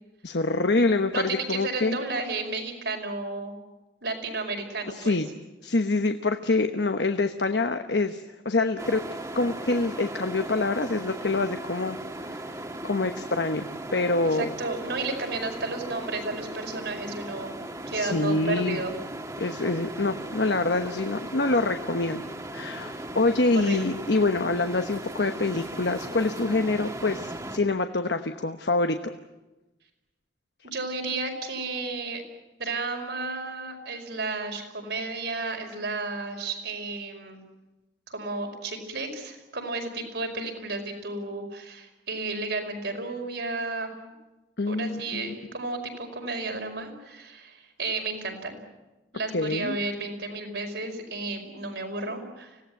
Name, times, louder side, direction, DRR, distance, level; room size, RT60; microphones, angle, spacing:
voice 1, 0.2-2.0 5.0-5.3 5.6-9.0 9.3-12.0 12.2-12.4 12.8-14.5 17.9-18.8 19.4-22.2 22.5-29.1 44.6-45.2 49.3-49.8, left 3 dB, 70° left, 7 dB, 1.1 m, -26 dB
voice 2, 1.1-3.5 4.0-5.2 14.3-17.6 17.9-19.0 23.5-24.0 30.6-32.2 32.6-37.4 38.1-43.9 44.7-48.6 49.1-52.6, right 3 dB, 75° right, 3 dB, 5.5 m, -32 dB
sound 1, 8.8-27.6, right 1 dB, 20° right, 1.9 m, -37 dB
25.5 x 18.0 x 9.4 m, 1.1 s
head